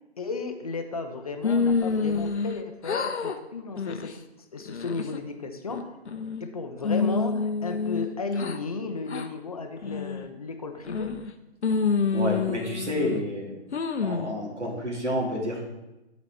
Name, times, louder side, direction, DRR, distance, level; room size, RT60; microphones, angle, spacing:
voice 1, 0.0-4.1 4.4-6.0 6.4-11.2, left 4 dB, 35° left, 5 dB, 0.5 m, -34 dB
sound 1, 1.4-2.6 2.8-3.4 3.8-4.1 4.6-5.2 5.7-6.4 6.8-8.6 9.1-9.3 9.8-10.3 10.8-11.3 11.6-13.2 13.7-14.3, left 5 dB, 75° left, 0.7 m, -27 dB
voice 2, 12.1-13.7 14.0-15.6, equal, 85° right, 0 dB, 2.0 m, -30 dB
10.5 x 4.1 x 3.3 m, 0.99 s
figure-of-eight pair, 140°, 34 cm